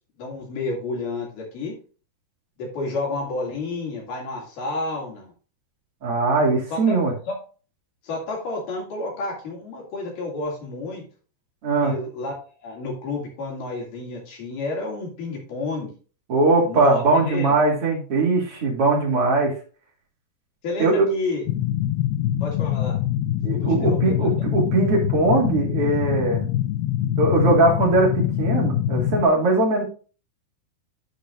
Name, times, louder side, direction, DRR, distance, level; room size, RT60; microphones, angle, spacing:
voice 1, 0.2-1.7 2.6-5.3 6.7-7.0 7.3-7.4 8.0-11.0 11.8-15.9 16.7-17.6 20.6-21.5 22.4-23.0 23.8-24.1, left 3 dB, 55° left, -2 dB, 3.9 m, -30 dB
voice 2, 6.0-7.1 11.6-11.9 16.3-19.5 20.8-21.1 23.4-26.4 27.2-29.8, right 3 dB, 40° right, -2 dB, 2.9 m, -20 dB
sound 1, 21.5-29.3, left 12 dB, 80° left, 2.4 m, -24 dB
12.5 x 5.2 x 2.6 m, 0.37 s
omnidirectional pair, 4.9 m